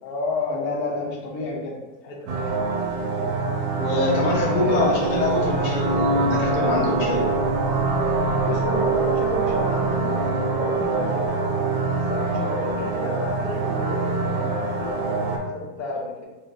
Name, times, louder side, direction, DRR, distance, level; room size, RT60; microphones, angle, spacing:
voice 1, 0.0-2.5 4.2-5.1 8.4-11.4 12.1-16.3, left 2 dB, 70° left, -1 dB, 1.1 m, -30 dB
sound 1, 2.3-15.4, right 3 dB, 70° right, 1.0 m, -24 dB
voice 2, 3.8-7.3, left 1 dB, 55° left, -4 dB, 0.5 m, -24 dB
4.2 x 2.2 x 2.6 m, 1.1 s
omnidirectional pair, 1.8 m